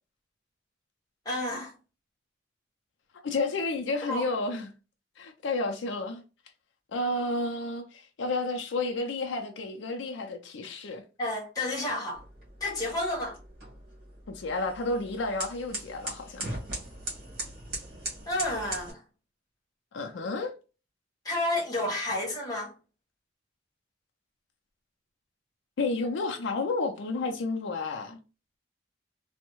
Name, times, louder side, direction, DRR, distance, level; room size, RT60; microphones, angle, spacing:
voice 1, 1.2-1.7 4.1-4.3 11.2-12.2 12.6-13.4 18.3-19.0 20.1-20.2 21.2-22.7, left 1 dB, 20° left, 1.1 m, -30 dB
voice 2, 3.2-4.7 5.2-6.2 6.9-11.0 14.3-16.5 19.9-20.5 25.8-28.2, left 3 dB, 75° left, 0.4 m, -31 dB
sound 1, 12.1-18.9, right 1 dB, 50° right, 1.4 m, -40 dB
3.4 x 2.1 x 2.9 m
head